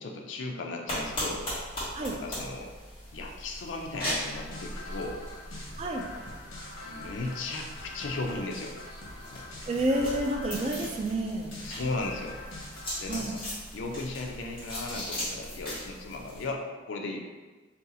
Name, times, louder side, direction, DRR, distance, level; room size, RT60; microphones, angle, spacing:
voice 1, 0.0-1.5 2.1-2.7 3.1-5.2 6.8-8.8 9.3-9.5 10.8-10.9 11.6-12.4 13.0-13.4 13.7-17.2, left 2 dB, 65° left, 1 dB, 0.4 m, -36 dB
sound 1, 0.9-16.5, left 1 dB, 25° left, 1.2 m, -39 dB
sound 2, 4.3-13.3, left 2 dB, 85° left, 0.8 m, -44 dB
voice 2, 5.8-6.1 9.7-11.5 13.1-13.4, right 1 dB, 30° right, 1 dB, 0.3 m, -29 dB
2.7 x 2.3 x 3.8 m, 1.3 s
head